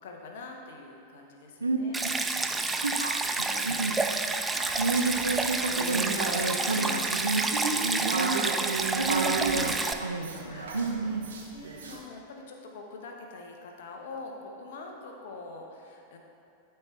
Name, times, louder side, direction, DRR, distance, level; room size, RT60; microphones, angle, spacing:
voice 1, 0.0-3.0 3.4-4.0 6.5-7.0 10.1-10.8 11.5-16.2, left 3 dB, 55° left, 2 dB, 1.0 m, -45 dB
Stream, 1.9-9.9, right 3 dB, 10° right, 0.4 m, -29 dB
voice 2, 2.8-4.0 4.7-7.5 7.8-8.5 8.9-11.3, right 3 dB, 80° right, 5 dB, 0.5 m, -30 dB
sound 1, 4.5-12.0, right 3 dB, 65° right, 1.0 m, -34 dB
12.0 x 4.5 x 3.5 m, 2.6 s
figure-of-eight pair, 90°, 0 cm